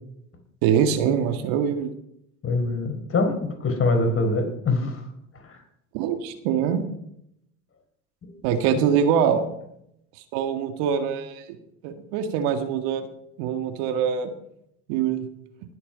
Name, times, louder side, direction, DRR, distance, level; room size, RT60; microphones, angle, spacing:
voice 1, 0.6-1.9 5.9-6.8 8.4-9.4 10.3-11.5 11.8-13.1 13.4-14.3 14.9-15.3, right 8 dB, 65° right, 8 dB, 1.8 m, -23 dB
voice 2, 2.4-5.0 5.3-5.6 8.2-8.3 8.8-8.9, left 3 dB, 30° left, 4 dB, 4.3 m, -24 dB
19.5 x 8.5 x 5.1 m, 0.77 s
hypercardioid pair, 85°, 43 cm